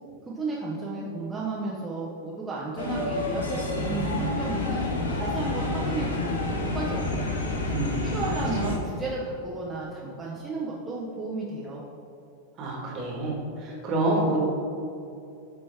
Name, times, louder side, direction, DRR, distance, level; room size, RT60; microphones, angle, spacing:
voice 1, 0.2-4.8 5.2-7.4 8.1-11.8, right 3 dB, 10° right, -6 dB, 0.8 m, -33 dB
sound 1, 2.8-8.8, left 2 dB, 70° left, 0.8 m, -29 dB
voice 2, 7.7-8.4 12.6-14.4, right 1 dB, 35° right, -2 dB, 1.5 m, -28 dB
8.5 x 3.3 x 3.3 m, 2.7 s
figure-of-eight pair, 90°, 0 cm